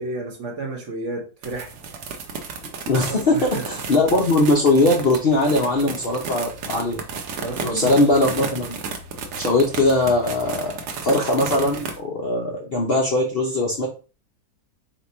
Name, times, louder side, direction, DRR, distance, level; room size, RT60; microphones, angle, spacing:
voice 1, 0.0-1.7 3.1-3.6 7.4-8.0, right 3 dB, 55° right, 1 dB, 1.2 m, -31 dB
sound 1, 1.4-12.0, right 5 dB, 75° right, 1.3 m, -33 dB
voice 2, 2.9-7.0 7.6-8.8 9.4-10.7 11.0-13.9, left 2 dB, 55° left, 0 dB, 0.6 m, -20 dB
4.3 x 2.3 x 4.1 m, 0.34 s
omnidirectional pair, 1.7 m